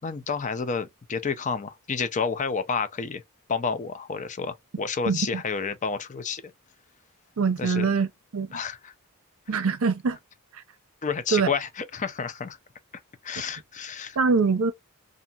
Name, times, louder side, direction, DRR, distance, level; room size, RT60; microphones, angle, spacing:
voice 1, 0.0-3.2 3.5-6.4 7.6-7.9 8.5-8.9 11.0-12.6 13.2-14.2, left 5 dB, 35° left, 0.5 m, -30 dB
voice 2, 5.1-5.4 7.4-8.1 8.3-8.6 9.5-10.2 11.3-11.5 14.2-14.7, right 5 dB, 70° right, 0.6 m, -23 dB
2.8 x 2.5 x 2.3 m
head